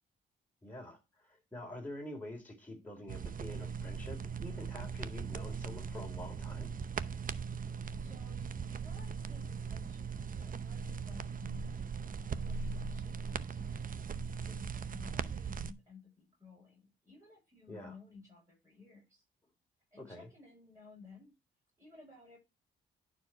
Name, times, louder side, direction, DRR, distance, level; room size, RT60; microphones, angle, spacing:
voice 1, 0.6-6.7 17.7-18.0 20.0-20.3, left 1 dB, 10° left, 3.9 m, -46 dB
sound 1, 3.1-15.7, right 6 dB, 40° right, 0.8 m, -39 dB
voice 2, 7.6-19.2 19.9-21.3 21.8-22.4, left 4 dB, 15° right, 6.8 m, -57 dB
11.0 x 4.7 x 4.6 m
cardioid pair, 85°, 21 cm